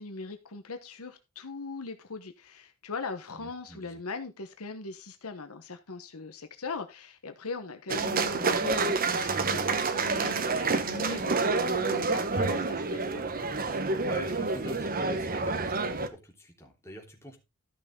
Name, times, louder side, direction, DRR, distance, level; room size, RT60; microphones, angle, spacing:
voice 1, 0.0-13.3, left 3 dB, 70° left, 1.2 m, -40 dB
voice 2, 3.3-4.0 10.0-10.3 13.7-17.4, equal, 10° left, 3.3 m, -45 dB
sound 1, 7.9-16.1, right 3 dB, 40° right, 1.1 m, -28 dB
13.5 x 6.3 x 3.7 m
head